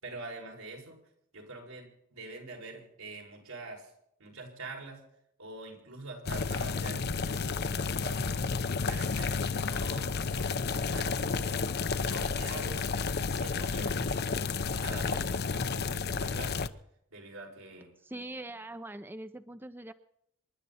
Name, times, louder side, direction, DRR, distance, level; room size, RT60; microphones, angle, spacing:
voice 1, 0.0-1.0 1.3-3.9 4.2-5.0 5.4-8.2 8.9-11.6 12.0-12.8 13.1-14.2 14.8-16.7 17.1-17.9, right 2 dB, 90° right, 0 dB, 6.3 m, -45 dB
sound 1, 6.3-16.7, left 4 dB, 50° left, 0.8 m, -31 dB
voice 2, 18.0-19.9, right 1 dB, 10° right, 10 dB, 0.6 m, -42 dB
27.0 x 11.5 x 4.3 m, 0.74 s
head